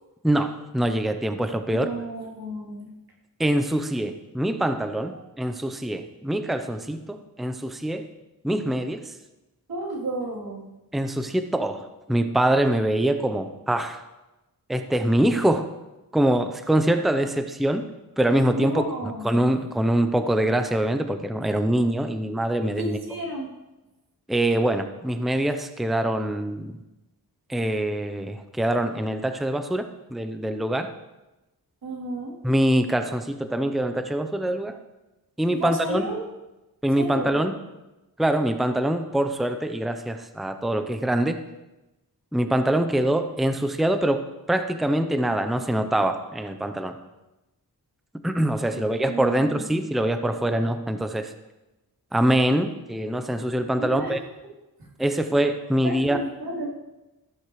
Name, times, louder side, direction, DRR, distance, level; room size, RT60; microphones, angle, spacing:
voice 1, 0.2-1.9 3.4-8.1 8.4-9.1 10.9-14.0 14.7-15.7 16.1-17.9 18.2-18.8 19.2-23.0 24.3-26.8 27.5-30.9 32.4-34.8 35.4-36.1 36.8-37.5 38.2-41.4 42.3-47.0 48.2-51.3 52.1-54.2 55.0-56.2, right 1 dB, ahead, 7 dB, 0.7 m, -24 dB
voice 2, 1.7-2.9 5.1-5.2 9.7-10.7 18.5-19.4 22.8-23.5 31.8-32.4 35.5-36.2 37.0-37.4 48.7-49.7 53.8-54.2 54.8-54.9 55.6-56.7, right 1 dB, 80° right, -3 dB, 3.4 m, -32 dB
15.0 x 11.5 x 3.2 m, 1.0 s
wide cardioid pair, 80°, 37 cm